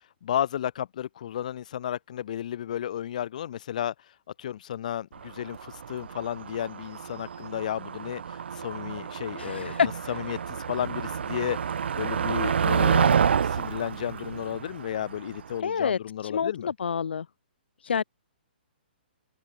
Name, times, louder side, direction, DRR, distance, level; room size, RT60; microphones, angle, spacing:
voice 1, 0.2-3.9 4.4-9.7 10.1-11.6 12.0-16.7, left 10 dB, 45° left, 2.4 m, -33 dB
Motor vehicle (road), 5.2-15.6, right 7 dB, 90° right, 0.4 m, -29 dB
voice 2, 9.4-9.9 15.6-17.3 17.8-18.0, left 6 dB, 80° left, 1.1 m, -28 dB
hypercardioid pair, 170°, 6 cm